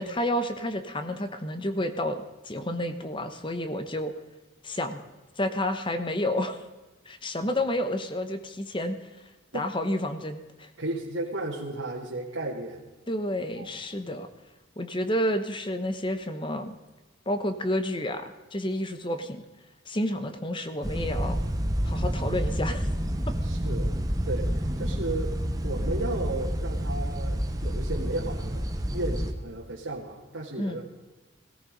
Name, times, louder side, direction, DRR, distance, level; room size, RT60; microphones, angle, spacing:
voice 1, 0.0-4.1 4.6-5.1 5.4-6.6 7.1-9.0 9.5-10.7 13.1-14.3 14.8-16.8 17.3-19.4 19.9-21.4 21.8-22.9 23.3-23.4 30.6-30.8, left 1 dB, 25° left, 9 dB, 1.0 m, -30 dB
voice 2, 10.8-12.8 13.6-13.7 23.4-23.9 24.3-28.6 28.9-30.8, right 2 dB, 75° right, -3 dB, 2.1 m, -34 dB
sound 1, 20.8-29.3, equal, 20° right, 1.1 m, -29 dB
17.5 x 13.5 x 5.3 m, 1.2 s
head